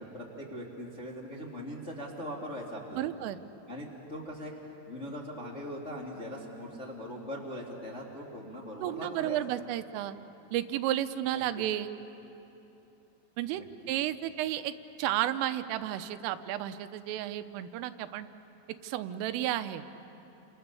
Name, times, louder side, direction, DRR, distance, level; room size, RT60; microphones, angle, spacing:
voice 1, 0.0-3.1 3.7-4.5 4.9-9.4 11.3-11.6 13.5-13.9, equal, 30° left, -4 dB, 1.2 m, -41 dB
voice 2, 3.0-3.4 8.8-10.2 10.5-11.9 13.4-13.6 13.9-14.7 15.0-18.3 18.8-19.8, right 13 dB, 85° right, 10 dB, 3.4 m, -32 dB
29.0 x 27.0 x 6.9 m, 3.0 s
omnidirectional pair, 5.7 m